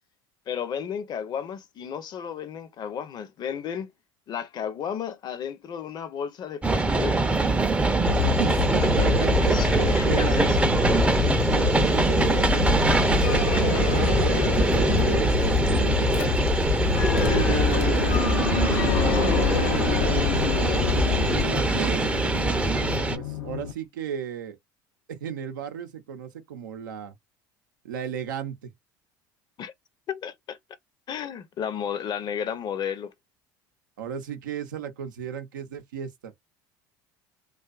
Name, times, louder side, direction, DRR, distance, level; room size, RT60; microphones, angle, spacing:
voice 1, 0.5-3.9 4.3-7.2 9.5-10.7 17.3-17.7 29.6-29.7 30.1-30.6 31.1-33.1, left 8 dB, 45° left, 0.6 m, -33 dB
sound 1, 6.6-23.2, right 3 dB, 10° right, 0.5 m, -23 dB
Dog, 8.0-21.4, left 8 dB, 70° left, 1.0 m, -27 dB
voice 2, 8.2-9.6 10.1-10.4 11.5-16.6 18.9-20.3 21.3-24.6 25.1-27.2 27.8-28.7 34.0-36.3, right 8 dB, 90° right, 0.6 m, -35 dB
sound 2, 13.2-23.7, left 6 dB, 90° left, 0.6 m, -30 dB
2.6 x 2.4 x 2.4 m
hypercardioid pair, 80°, 10 cm